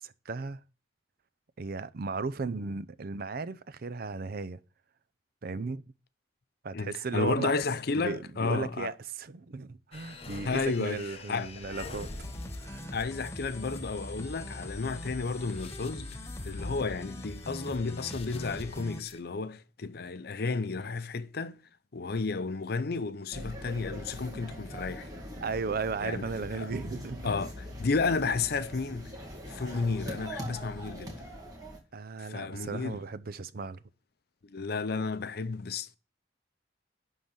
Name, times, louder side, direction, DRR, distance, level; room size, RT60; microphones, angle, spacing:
voice 1, 0.0-0.6 1.6-4.6 5.4-5.8 6.6-7.5 7.9-12.1 12.6-13.0 25.4-27.3 31.9-33.8, right 4 dB, 55° right, 0.6 m, -35 dB
voice 2, 6.7-8.9 10.4-11.0 11.3-11.5 12.9-16.1 16.4-21.6 21.9-25.1 26.0-26.7 27.2-29.1 29.5-31.3 32.2-33.0 34.4-36.0, left 4 dB, 60° left, 0.7 m, -32 dB
sound 1, 9.9-19.2, left 3 dB, 35° left, 1.1 m, -46 dB
sound 2, 12.0-19.0, equal, 15° left, 0.8 m, -42 dB
sound 3, 23.3-31.8, equal, 20° right, 2.1 m, -42 dB
11.5 x 3.9 x 7.0 m
head